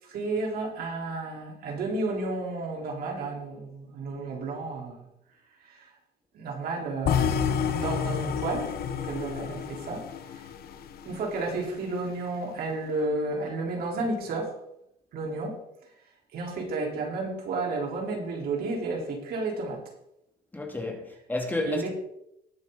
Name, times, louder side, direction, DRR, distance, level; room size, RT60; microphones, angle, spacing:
voice 1, 0.1-5.0 5.6-5.9 6.3-7.4 7.7-10.1 10.3-10.5 11.0-14.5 15.1-15.6 16.3-19.8 21.6-21.9, right 3 dB, 65° right, 4.2 m, -32 dB
sound 1, 7.0-11.2, left 8 dB, 65° left, 1.2 m, -29 dB
voice 2, 20.5-21.9, left 2 dB, 10° left, 2.5 m, -31 dB
20.0 x 7.0 x 4.1 m
cardioid pair, 110°, 17 cm